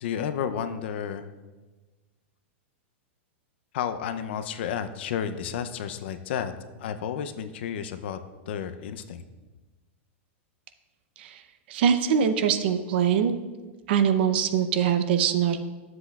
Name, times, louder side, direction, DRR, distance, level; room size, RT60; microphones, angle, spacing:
voice 1, 0.0-1.3 3.7-6.5 6.8-8.2 8.5-9.2, left 8 dB, 55° left, 10 dB, 0.5 m, -31 dB
voice 2, 11.7-13.3 13.9-15.6, right 8 dB, 50° right, 9 dB, 0.6 m, -23 dB
12.0 x 7.8 x 2.3 m, 1.2 s
supercardioid pair, 165°, 7 cm